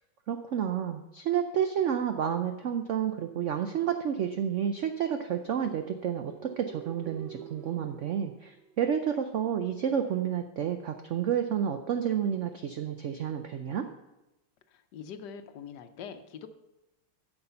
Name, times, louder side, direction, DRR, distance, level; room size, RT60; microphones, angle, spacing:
voice 1, 0.3-13.9, right 8 dB, 90° right, 7 dB, 0.6 m, -30 dB
sound 1, 5.4-9.2, right 10 dB, 75° right, 1.5 m, -48 dB
voice 2, 14.7-16.5, left 7 dB, 70° left, 9 dB, 1.2 m, -43 dB
9.6 x 6.9 x 5.6 m, 0.98 s
omnidirectional pair, 2.0 m